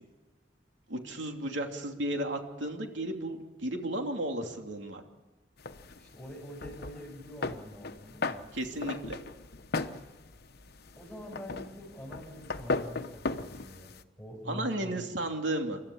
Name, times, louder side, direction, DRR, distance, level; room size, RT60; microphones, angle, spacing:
voice 1, 0.9-5.0 8.5-9.2 14.5-15.8, right 1 dB, 80° right, 3 dB, 2.9 m, -34 dB
sound 1, 5.6-14.0, left 3 dB, 60° left, 1.1 m, -37 dB
voice 2, 6.0-8.4 10.9-15.0, left 1 dB, 5° left, -5 dB, 6.7 m, -45 dB
29.0 x 13.0 x 8.7 m, 1.2 s
head